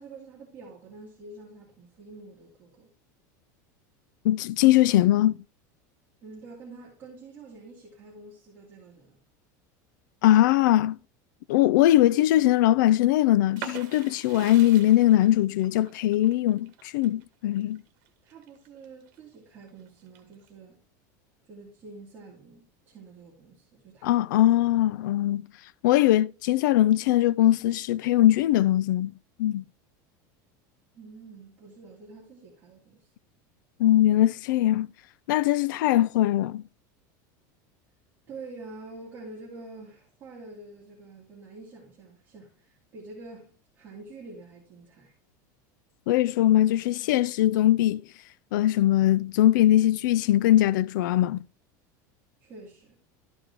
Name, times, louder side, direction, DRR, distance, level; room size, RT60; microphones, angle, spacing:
voice 1, 0.0-2.9 6.2-9.2 18.2-20.8 21.4-24.2 30.9-33.1 38.3-45.1 52.4-52.9, right 3 dB, 20° right, 2.6 m, -47 dB
voice 2, 4.2-5.4 10.2-11.0 11.5-17.8 24.0-25.4 25.8-29.1 29.4-29.6 33.8-34.9 35.3-36.6 46.1-48.0 48.5-51.4, left 13 dB, 80° left, 0.4 m, -21 dB
sound 1, 13.6-19.2 19.6-20.5, right 11 dB, 50° right, 1.8 m, -44 dB
13.0 x 5.1 x 4.6 m
supercardioid pair, 180°, 10 cm